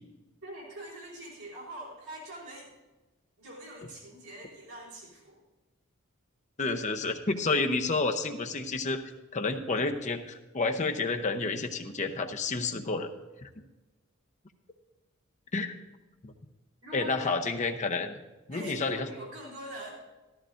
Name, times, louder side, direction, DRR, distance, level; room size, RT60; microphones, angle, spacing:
voice 1, 0.4-2.7 3.4-5.4 16.8-17.4 18.5-20.0, right 1 dB, 75° right, -4 dB, 3.8 m, -43 dB
voice 2, 6.6-9.0 9.3-13.1 13.4-13.5 15.5-15.7 16.2-16.3 16.9-18.2 18.5-19.1, left 3 dB, 35° left, 5 dB, 0.8 m, -30 dB
14.0 x 13.5 x 2.5 m, 1.1 s
head